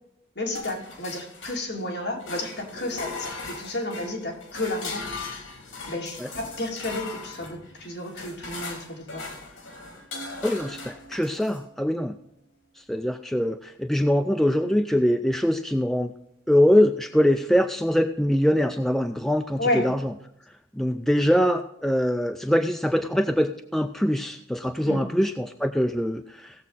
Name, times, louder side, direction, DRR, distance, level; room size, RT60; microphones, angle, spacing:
voice 1, 0.4-5.1 5.9-9.4 19.6-19.9 24.8-25.0, left 1 dB, 55° left, -1 dB, 2.7 m, -31 dB
sound 1, 0.5-1.9 2.2-11.6, left 3 dB, 75° left, 3.0 m, -38 dB
voice 2, 10.4-12.1 12.9-16.1 16.5-20.1 20.8-26.6, equal, ahead, 6 dB, 0.4 m, -23 dB
17.0 x 7.3 x 4.1 m, 0.77 s
head